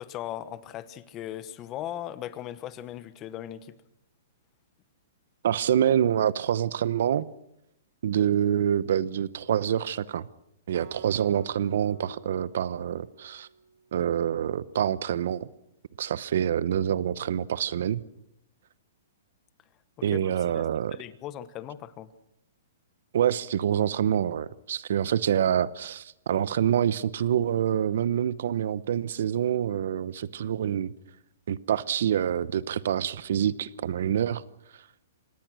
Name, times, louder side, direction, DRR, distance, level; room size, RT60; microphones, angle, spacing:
voice 1, 0.0-3.7 20.1-20.2 20.5-20.6 20.9-22.1, left 12 dB, 25° left, 15 dB, 1.1 m, -38 dB
voice 2, 5.4-7.3 8.0-10.3 10.7-13.5 13.9-15.5 16.0-18.0 20.0-21.0 23.1-30.9 31.5-34.4, right 9 dB, 65° right, 19 dB, 0.9 m, -26 dB
Acoustic guitar, 10.7-14.0, right 6 dB, 35° right, 2.9 m, -49 dB
26.0 x 18.5 x 6.3 m, 0.80 s
hypercardioid pair, 150°, 0 cm